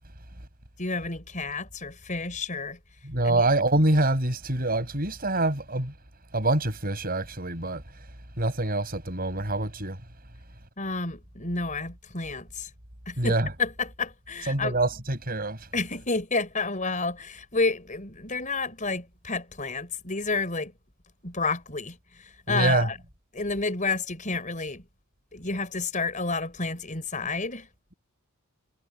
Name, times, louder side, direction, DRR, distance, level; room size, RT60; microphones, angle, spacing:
voice 1, 0.8-2.8 3.2-3.4 10.8-12.7 13.0-14.8 15.7-20.7 21.2-23.0 23.3-24.8 25.3-27.7, left 3 dB, 35° left, 5.1 m, -30 dB
voice 2, 3.0-5.9 6.3-7.8 8.4-10.0 13.2-13.5 14.5-15.6 22.5-22.9, right 2 dB, 40° right, 6.6 m, -25 dB
head